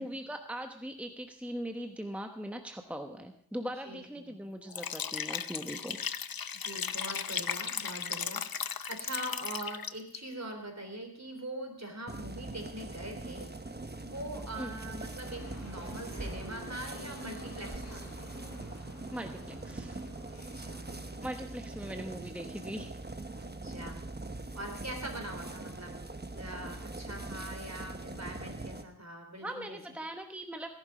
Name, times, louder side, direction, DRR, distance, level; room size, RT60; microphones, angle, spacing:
voice 1, 0.0-6.0 14.6-14.8 19.1-20.0 21.2-23.0 29.4-30.7, equal, 5° right, 5 dB, 1.1 m, -40 dB
voice 2, 3.8-4.4 6.6-13.5 14.0-18.0 20.3-21.0 21.6-21.7 23.4-24.0 24.5-26.0 26.3-29.8, right 1 dB, 45° right, 3 dB, 3.6 m, -42 dB
Liquid, 4.7-10.2, left 7 dB, 70° left, 0.6 m, -36 dB
sound 1, 12.1-28.8, right 2 dB, 25° right, 1.1 m, -42 dB
sound 2, 15.2-21.3, left 2 dB, 40° left, 6.1 m, -51 dB
17.5 x 11.0 x 5.0 m, 0.62 s
wide cardioid pair, 45°, 37 cm